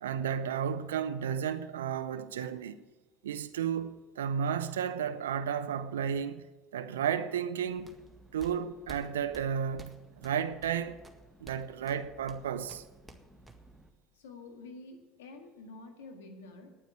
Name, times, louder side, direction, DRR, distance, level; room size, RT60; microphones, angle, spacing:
voice 1, 0.0-2.8 3.2-6.5 6.7-8.0 8.3-11.0 11.4-12.8, right 8 dB, 90° right, 0.5 m, -33 dB
sound 1, 7.6-13.9, right 1 dB, ahead, 1.8 m, -54 dB
voice 2, 14.2-16.7, left 3 dB, 85° left, 2.0 m, -48 dB
9.9 x 9.1 x 8.3 m
hypercardioid pair, 75°, 0 cm